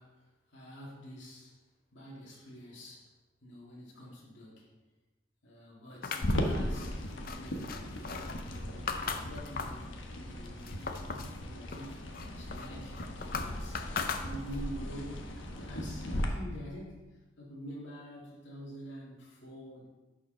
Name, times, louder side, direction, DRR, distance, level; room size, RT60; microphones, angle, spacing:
voice 1, 0.0-1.6 1.9-3.1 3.4-4.7 5.4-8.0 8.5-12.0 12.4-13.0 13.3-13.9 14.2-17.1 17.4-19.9, equal, 75° left, -5 dB, 2.1 m, -47 dB
sound 1, 6.0-9.9 10.3-11.4 11.7-14.7, left 5 dB, 50° left, 0.6 m, -39 dB
sound 2, 6.2-16.3, equal, 90° left, 1.1 m, -37 dB
11.0 x 4.9 x 3.8 m, 1.1 s
head